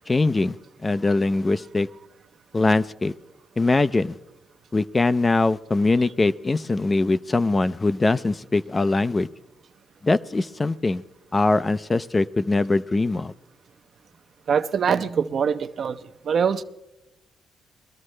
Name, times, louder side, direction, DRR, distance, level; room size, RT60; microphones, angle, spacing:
voice 1, 0.1-0.6 0.8-1.9 2.5-3.1 3.6-4.2 4.7-9.3 10.0-11.0 11.3-13.3, left 3 dB, 25° left, 0.4 m, -22 dB
voice 2, 14.5-16.0 16.2-16.6, right 7 dB, 55° right, 0.6 m, -23 dB
21.5 x 13.0 x 3.2 m
cardioid pair, 90°, 0 cm